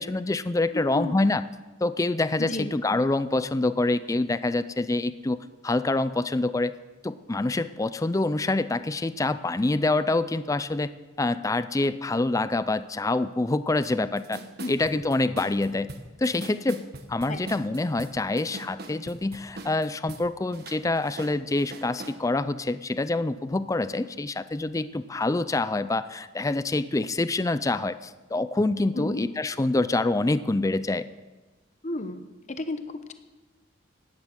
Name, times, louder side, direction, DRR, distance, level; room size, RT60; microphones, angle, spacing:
voice 1, 0.0-1.4 1.8-5.4 5.6-6.7 7.0-10.9 11.2-14.4 14.7-15.9 16.2-31.0, left 2 dB, 15° left, 14 dB, 0.4 m, -26 dB
voice 2, 0.7-1.2 2.4-2.7 14.6-14.7 17.3-17.4 28.9-29.2 31.8-33.1, left 2 dB, 40° left, 9 dB, 0.9 m, -32 dB
sound 1, 13.8-13.9 14.2-20.2 20.5-22.2, right 2 dB, 55° right, 1.5 m, -42 dB
16.5 x 11.0 x 6.4 m, 1.2 s
head